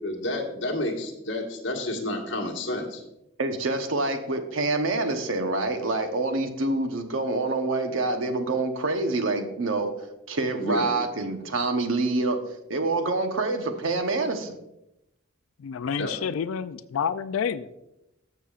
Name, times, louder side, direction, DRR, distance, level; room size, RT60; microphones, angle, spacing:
voice 1, 0.0-3.0 10.6-10.9 16.0-16.1, left 1 dB, 65° left, 1 dB, 1.6 m, -30 dB
voice 2, 3.4-9.9 10.3-12.4 12.7-14.6, right 2 dB, 75° right, 7 dB, 0.9 m, -26 dB
voice 3, 15.6-17.7, left 7 dB, 80° left, 14 dB, 0.3 m, -29 dB
13.5 x 6.9 x 2.4 m, 0.87 s
head